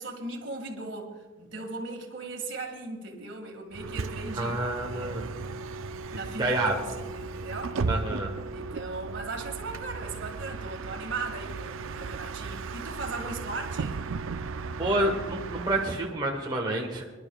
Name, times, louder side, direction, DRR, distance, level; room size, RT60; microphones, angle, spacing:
voice 1, 0.0-5.4 6.1-7.8 8.5-14.1, right 3 dB, 65° right, 3 dB, 1.8 m, -38 dB
Bus, 3.7-16.2, right 4 dB, 80° right, 0.5 m, -36 dB
voice 2, 4.3-5.3 6.4-6.7 7.8-8.3 14.8-17.0, right 1 dB, 20° right, 0 dB, 1.0 m, -28 dB
26.0 x 11.0 x 2.3 m, 1.3 s
head